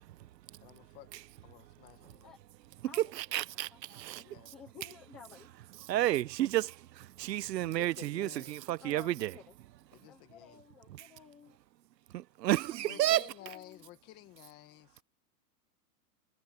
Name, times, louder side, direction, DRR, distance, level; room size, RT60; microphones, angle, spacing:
voice 1, 0.1-0.7 1.1-1.2 2.8-4.5 5.8-9.4 10.9-11.1 12.1-13.2, right 14 dB, 80° right, 0.9 m, -32 dB
voice 2, 0.6-1.1 1.4-2.4 4.2-4.5 5.9-6.2 7.6-8.6 9.9-10.6 12.9-15.0, left 16 dB, 20° left, 1.7 m, -53 dB
voice 3, 2.9-3.4 3.7-5.5 8.8-9.5 10.1-11.6 12.7-13.9, left 6 dB, 5° left, 0.5 m, -54 dB
supercardioid pair, 180°, 49 cm